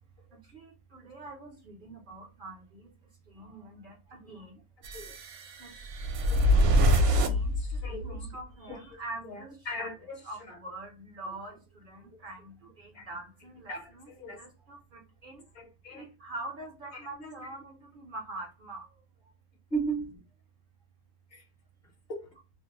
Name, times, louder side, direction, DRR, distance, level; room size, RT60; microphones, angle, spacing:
voice 1, 0.3-2.9 3.3-4.6 5.6-5.7 6.2-9.9 10.3-14.1 14.3-15.4 15.9-19.3, right 2 dB, 50° right, 0.7 m, -45 dB
sound 1, 4.8-8.3, equal, 75° right, 1.0 m, -25 dB
voice 2, 7.0-8.3 8.7-8.8 9.2-10.6 11.5-11.6 12.1-12.2 12.9-13.1 13.7-14.4 15.5-16.1 16.9-17.6 19.7-20.1 21.3-21.5 22.1-22.3, right 2 dB, 50° left, 0.9 m, -38 dB
2.5 x 2.0 x 2.8 m
omnidirectional pair, 1.5 m